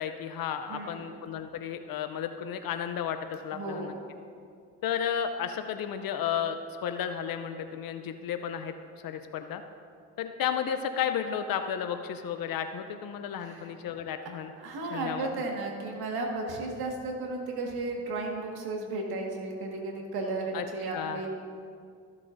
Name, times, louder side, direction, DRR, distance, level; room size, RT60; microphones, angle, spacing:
voice 1, 0.0-3.9 4.8-8.7 9.0-9.6 10.2-14.5 14.9-15.3 20.5-20.6 20.9-21.3, left 8 dB, 65° left, 8 dB, 0.6 m, -33 dB
voice 2, 0.7-1.1 3.5-4.0 13.4-13.7 14.2-21.3, right 2 dB, 80° right, 1 dB, 1.7 m, -34 dB
15.0 x 7.4 x 2.6 m, 2.3 s
supercardioid pair, 50°, 37 cm